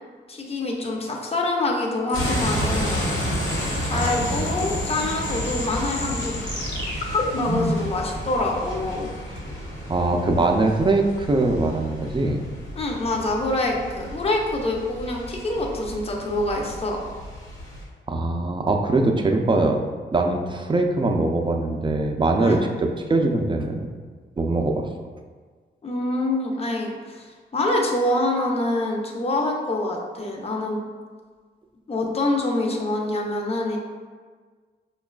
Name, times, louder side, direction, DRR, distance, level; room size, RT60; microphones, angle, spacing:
voice 1, 0.3-3.0 3.8-6.3 7.0-9.1 12.8-17.0 22.4-22.6 25.8-27.2 27.5-30.8 31.9-33.8, left 2 dB, 30° left, -1 dB, 0.6 m, -25 dB
sound 1, 2.1-17.8, equal, 85° left, 0.9 m, -31 dB
sound 2, 2.1-7.9, left 1 dB, 60° left, 1.1 m, -32 dB
voice 2, 3.9-4.5 9.9-12.4 18.1-19.8 20.1-23.8 24.4-24.9, right 2 dB, 25° right, 3 dB, 0.4 m, -22 dB
4.8 x 2.3 x 2.3 m, 1.5 s
cardioid pair, 65°, 19 cm